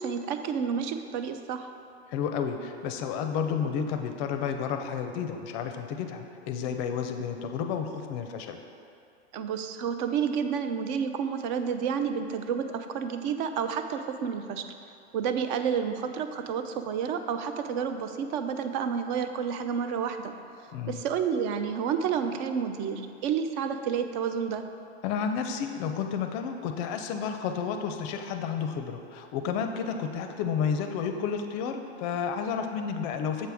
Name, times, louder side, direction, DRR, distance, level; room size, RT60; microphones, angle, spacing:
voice 1, 0.0-1.7 9.3-14.7 15.1-20.3 20.9-24.6, right 7 dB, 45° right, 8 dB, 0.5 m, -30 dB
voice 2, 2.1-8.6 20.7-21.0 25.0-33.5, left 7 dB, 40° left, 6 dB, 0.5 m, -31 dB
7.5 x 4.6 x 3.5 m, 2.5 s
hypercardioid pair, 115°, 33 cm